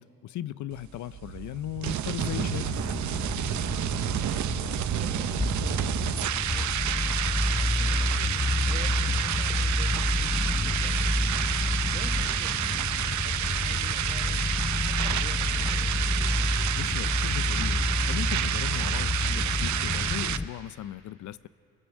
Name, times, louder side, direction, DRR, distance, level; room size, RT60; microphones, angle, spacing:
voice 1, 0.0-2.7 16.7-21.5, left 13 dB, 70° left, 0.6 m, -37 dB
sound 1, 0.7-20.4, right 11 dB, 70° right, 0.9 m, -30 dB
sound 2, 2.2-20.5, left 2 dB, 10° left, 0.6 m, -29 dB
voice 2, 3.8-4.2 5.0-6.7 7.6-11.0 11.8-14.4 14.9-15.6, right 5 dB, 35° right, 1.8 m, -48 dB
28.0 x 22.5 x 7.3 m
cardioid pair, 90°, 30 cm